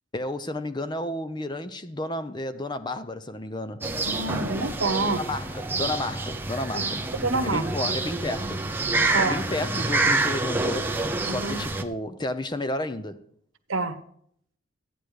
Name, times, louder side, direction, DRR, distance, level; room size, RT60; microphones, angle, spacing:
voice 1, 0.1-3.9 5.2-7.0 7.4-8.6 9.2-10.9 11.2-13.2, left 2 dB, 20° left, 0.7 m, -32 dB
sound 1, 3.8-11.8, right 2 dB, 10° right, 0.8 m, -27 dB
voice 2, 4.1-5.2 6.7-6.8 7.1-7.6 9.1-9.4 11.3-11.6 13.7-13.9, right 3 dB, 85° right, 1.2 m, -27 dB
14.0 x 9.4 x 5.0 m
head